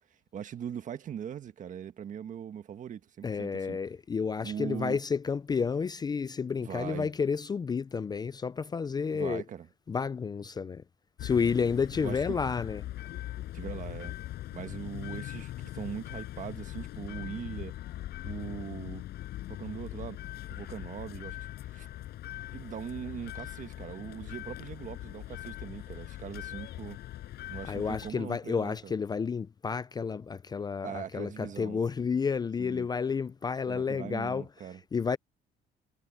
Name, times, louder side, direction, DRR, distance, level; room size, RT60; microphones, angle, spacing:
voice 1, 0.3-3.8 4.4-5.0 6.6-7.1 9.1-9.7 12.0-12.4 13.5-14.2 14.5-17.8 18.2-19.0 19.5-20.2 20.5-21.9 22.5-27.0 27.5-28.9 30.8-31.8 32.6-32.9 33.7-34.8, right 9 dB, 50° right, 1.6 m, -40 dB
voice 2, 3.2-9.4 9.9-10.8 11.2-12.8 27.7-34.4 34.9-35.2, left 5 dB, 25° left, 0.5 m, -31 dB
sound 1, 11.2-28.1, left 14 dB, 75° left, 6.8 m, -41 dB
cardioid pair, 110°, 17 cm